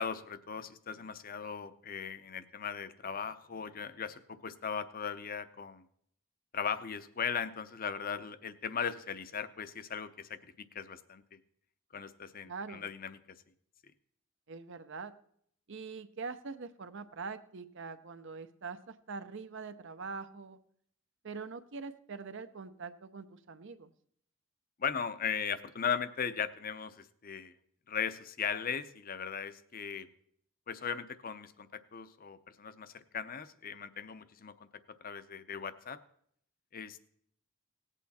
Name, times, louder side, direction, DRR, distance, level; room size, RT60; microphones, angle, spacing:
voice 1, 0.0-5.8 6.5-11.4 11.9-13.4 24.8-27.5 27.9-30.1 30.7-34.7 35.0-36.0 36.7-37.0, left 7 dB, 45° left, 13 dB, 0.7 m, -38 dB
voice 2, 12.4-12.9 14.5-15.1 15.7-20.6 21.2-23.9, right 4 dB, 60° right, 11 dB, 0.7 m, -43 dB
17.5 x 8.3 x 4.2 m, 0.66 s
head